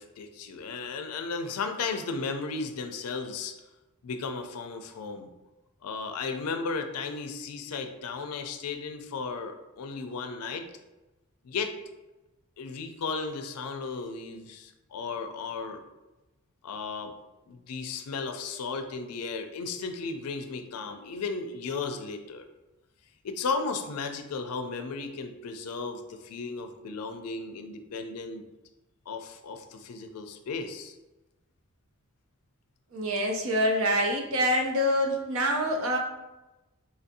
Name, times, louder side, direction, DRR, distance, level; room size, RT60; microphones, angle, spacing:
voice 1, 0.0-3.5 4.0-5.3 5.8-10.7 11.4-11.8 12.6-15.8 16.6-17.1 17.5-22.5 23.2-28.5 29.1-30.9, left 4 dB, 85° left, 7 dB, 0.4 m, -35 dB
voice 2, 32.9-36.0, equal, 65° right, 2 dB, 0.6 m, -26 dB
4.0 x 2.5 x 2.7 m, 1.0 s
head